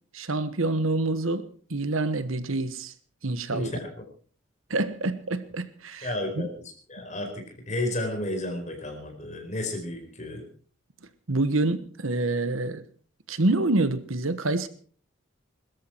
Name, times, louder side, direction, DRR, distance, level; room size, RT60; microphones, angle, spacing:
voice 1, 0.1-2.9 3.2-3.7 4.7-6.5 11.3-12.8 13.3-14.7, right 2 dB, 80° right, 1.3 m, -27 dB
voice 2, 3.5-3.9 6.0-6.5 6.9-10.4, left 1 dB, 35° left, 4.6 m, -32 dB
21.5 x 13.5 x 4.6 m
head